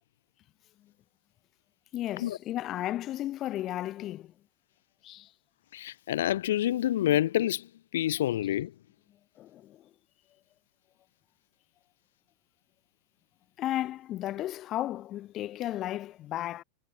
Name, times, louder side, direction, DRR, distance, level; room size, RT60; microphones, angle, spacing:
voice 1, 1.9-4.3 5.0-5.3 9.4-9.9 13.6-16.6, left 13 dB, 35° left, 3.8 m, -34 dB
voice 2, 5.7-7.7 7.9-8.7, left 13 dB, 80° left, 0.3 m, -27 dB
supercardioid pair, 135°, 0 cm